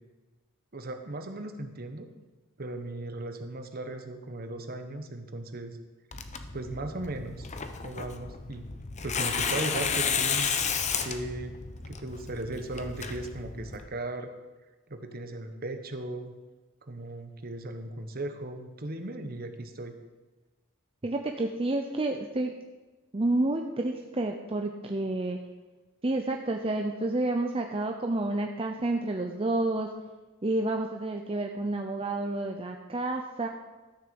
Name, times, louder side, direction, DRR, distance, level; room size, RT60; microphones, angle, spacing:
voice 1, 0.7-2.1 2.6-5.8 6.5-7.5 7.8-8.7 9.0-10.6 11.0-11.6 11.9-14.3 14.9-16.3 16.9-19.9, right 2 dB, 45° right, 7 dB, 1.1 m, -37 dB
Tearing, 6.1-13.9, left 6 dB, 35° left, 0.8 m, -32 dB
voice 2, 21.0-22.5 23.1-25.4 26.0-29.9 30.4-33.5, right 2 dB, 25° right, 3 dB, 0.6 m, -29 dB
13.0 x 6.8 x 7.0 m, 1.2 s
head